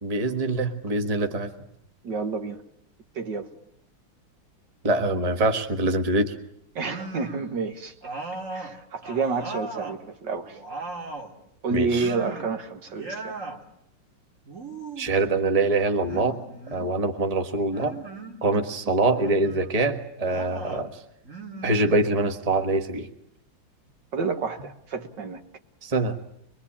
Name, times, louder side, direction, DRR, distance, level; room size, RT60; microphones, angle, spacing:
voice 1, 0.0-1.5 4.8-6.3 11.7-12.1 15.0-16.4 16.7-18.0 18.4-21.0 21.6-23.1 25.8-26.2, right 2 dB, 20° right, 6 dB, 1.5 m, -24 dB
voice 2, 2.0-2.6 3.2-3.5 6.8-7.9 8.5-10.6 11.6-13.4 24.1-25.4, right 4 dB, 65° right, 6 dB, 2.0 m, -29 dB
sound 1, 6.8-7.6 8.0-10.0 10.4-11.4 11.9-12.6 12.9-13.6 14.5-15.2 16.1-17.0 17.7-18.4 19.1-19.7 20.2-20.9 21.2-22.4, right 3 dB, 40° right, 2.6 m, -38 dB
24.0 x 23.0 x 8.7 m, 0.74 s
omnidirectional pair, 2.1 m